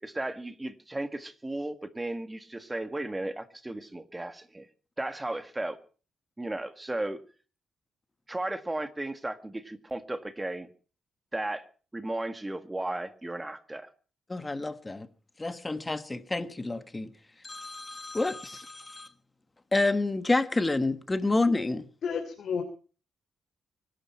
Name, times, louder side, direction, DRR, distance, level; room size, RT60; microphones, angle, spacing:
voice 1, 0.0-4.7 5.0-5.8 6.4-7.2 8.3-10.7 11.3-11.6 11.9-13.9, right 1 dB, 10° right, 1.6 m, -35 dB
voice 2, 14.3-15.1 15.4-17.1 17.4-19.1 19.7-21.9, left 2 dB, 15° left, 1.3 m, -29 dB
voice 3, 22.0-22.6, left 6 dB, 55° left, 3.0 m, -31 dB
24.5 x 12.0 x 4.5 m
cardioid pair, 120°, 0 cm